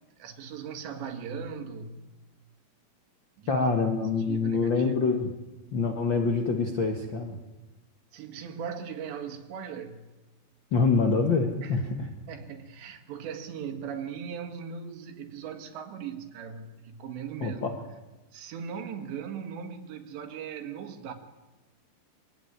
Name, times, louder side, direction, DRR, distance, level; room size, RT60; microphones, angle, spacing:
voice 1, 0.2-2.0 3.4-3.7 4.3-5.1 8.1-10.1 11.6-11.8 12.3-17.6 18.3-21.1, right 7 dB, 85° right, 4.1 m, -39 dB
voice 2, 3.5-5.3 5.7-7.4 10.7-11.9 17.4-17.8, left 4 dB, 70° left, 1.1 m, -25 dB
23.5 x 17.0 x 9.8 m
omnidirectional pair, 4.9 m